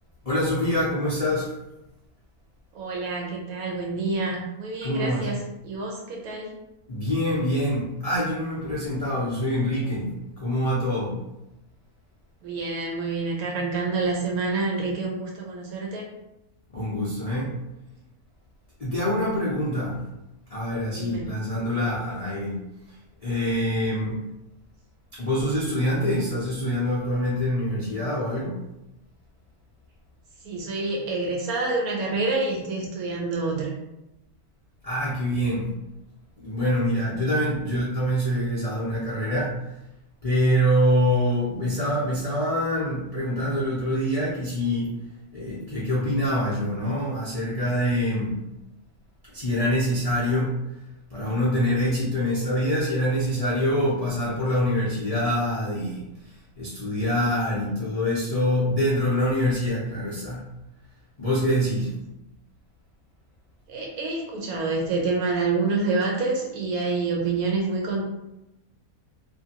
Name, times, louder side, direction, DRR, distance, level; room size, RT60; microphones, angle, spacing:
voice 1, 0.2-1.5 4.8-5.3 6.9-11.2 16.7-17.5 18.8-20.0 20.5-22.6 23.2-24.2 25.1-28.6 34.8-35.7 36.4-39.6 40.2-44.9 45.3-48.4 49.3-50.6 51.1-56.1 56.6-60.4 61.2-61.9, equal, 75° left, -7 dB, 0.3 m, -25 dB
voice 2, 2.7-6.5 12.4-16.1 21.0-21.3 30.4-33.7 63.7-68.0, right 3 dB, 80° right, -1 dB, 1.1 m, -27 dB
2.6 x 2.5 x 2.8 m, 0.92 s
omnidirectional pair, 1.6 m